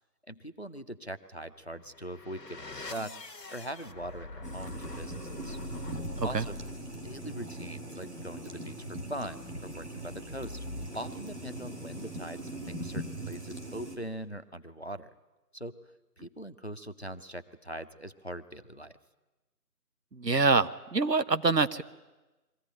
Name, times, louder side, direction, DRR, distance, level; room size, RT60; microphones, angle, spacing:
voice 1, 0.3-3.1 3.5-5.6 6.2-6.5 7.0-10.6 10.9-15.1 15.5-15.7 16.2-18.9, right 1 dB, 40° left, 11 dB, 0.7 m, -41 dB
sound 1, 1.7-12.4, left 2 dB, 75° left, 1.2 m, -45 dB
sound 2, 4.4-14.0, right 2 dB, 45° right, 2.2 m, -41 dB
voice 2, 20.1-21.8, right 3 dB, 85° right, 13 dB, 1.1 m, -26 dB
22.5 x 15.0 x 9.8 m, 1.1 s
figure-of-eight pair, 170°, 49 cm